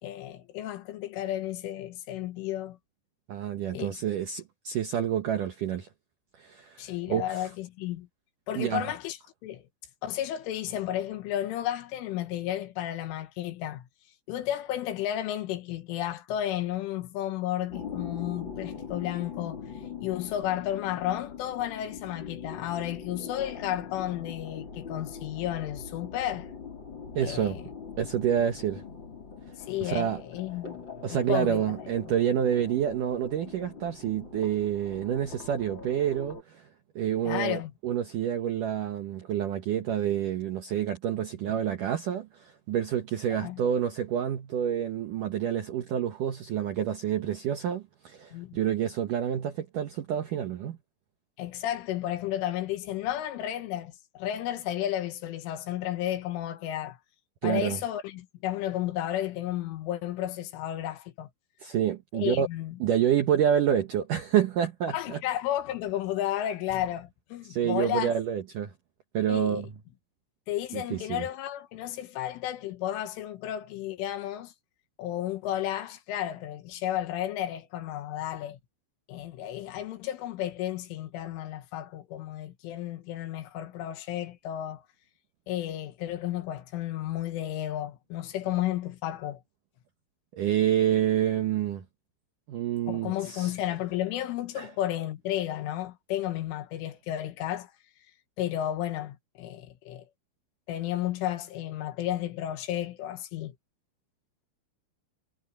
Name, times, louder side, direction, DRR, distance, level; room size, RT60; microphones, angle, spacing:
voice 1, 0.0-2.8 3.7-4.0 6.8-8.1 8.5-9.6 10.0-13.9 14.3-19.7 20.0-26.5 27.2-27.6 29.6-30.8 31.1-31.6 37.2-37.7 43.4-43.6 48.3-48.6 51.4-57.0 57.4-61.3 62.1-62.8 64.9-68.1 69.3-69.7 70.5-74.5 75.0-78.6 79.1-84.8 85.5-89.4 92.9-97.7 98.4-100.1 100.7-103.6, left 12 dB, 80° left, 3.8 m, -33 dB
voice 2, 3.3-5.9 6.3-7.5 8.6-8.9 27.2-27.6 28.0-28.8 29.8-30.2 31.0-36.7 37.0-50.8 57.4-57.8 61.6-62.5 62.8-65.2 67.4-68.7 69.1-69.7 70.7-71.3 90.3-91.8 92.5-93.5 94.6-94.7, right 9 dB, 90° right, 1.8 m, -28 dB
sound 1, 17.7-36.4, left 6 dB, 25° left, 4.0 m, -42 dB
omnidirectional pair, 5.7 m